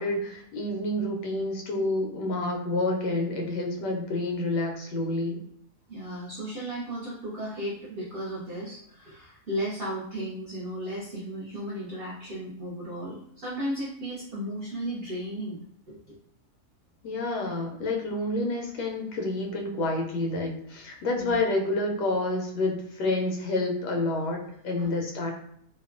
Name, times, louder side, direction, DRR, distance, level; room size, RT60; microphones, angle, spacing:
voice 1, 0.0-5.4 17.0-25.3, left 2 dB, 90° left, 1 dB, 1.2 m, -29 dB
voice 2, 5.9-16.2 21.1-21.4 24.8-24.9, right 1 dB, 65° right, -7 dB, 0.6 m, -35 dB
2.9 x 2.0 x 2.4 m, 0.67 s
omnidirectional pair, 1.7 m